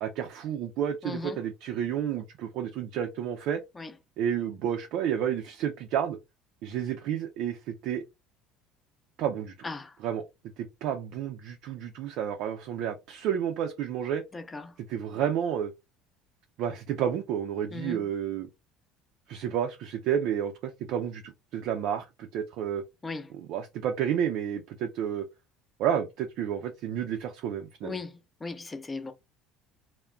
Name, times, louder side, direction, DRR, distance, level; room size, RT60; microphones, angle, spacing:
voice 1, 0.0-3.6 4.2-6.2 6.6-8.0 9.2-9.5 10.0-10.2 10.6-14.2 14.9-15.7 16.6-18.5 19.3-22.8 23.5-25.2 25.8-28.0, right 9 dB, 60° right, 0.4 m, -30 dB
voice 2, 1.0-1.4 3.7-3.9 9.6-10.0 14.3-14.8 17.7-18.1 23.0-23.3 27.8-29.1, left 3 dB, 20° left, 0.6 m, -38 dB
2.2 x 2.1 x 3.6 m
hypercardioid pair, 65°, 0 cm